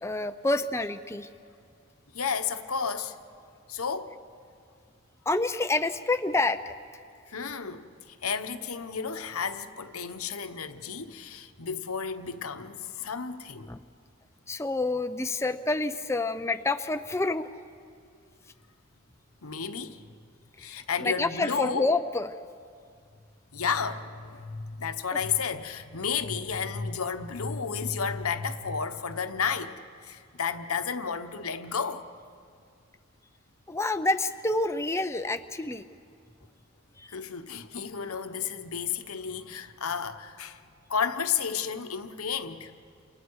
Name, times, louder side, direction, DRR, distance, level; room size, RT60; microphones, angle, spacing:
voice 1, 0.0-1.3 5.3-6.7 13.7-13.8 14.5-17.7 20.6-22.3 33.7-35.8 37.0-37.1, left 2 dB, 10° left, 0.5 m, -28 dB
voice 2, 2.1-3.2 3.7-4.1 7.3-13.7 19.4-20.0 20.6-21.9 23.5-32.1 37.1-40.6 40.9-42.7, left 6 dB, 90° left, 1.1 m, -32 dB
29.5 x 28.0 x 4.8 m
head